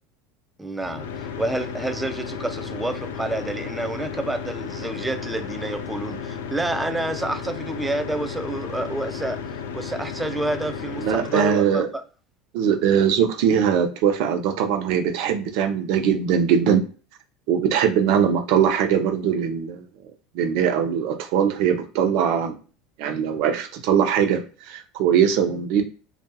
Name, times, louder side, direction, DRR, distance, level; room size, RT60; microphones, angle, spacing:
voice 1, 0.6-12.0, right 2 dB, 10° right, 0.3 m, -29 dB
sound 1, 0.8-11.5, left 6 dB, 85° left, 0.3 m, -33 dB
voice 2, 11.0-11.9 12.5-16.8 17.5-19.8 20.3-22.6 23.0-24.4 24.7-25.8, right 8 dB, 65° right, 0.6 m, -21 dB
2.6 x 2.4 x 2.3 m
hypercardioid pair, 95°, 0 cm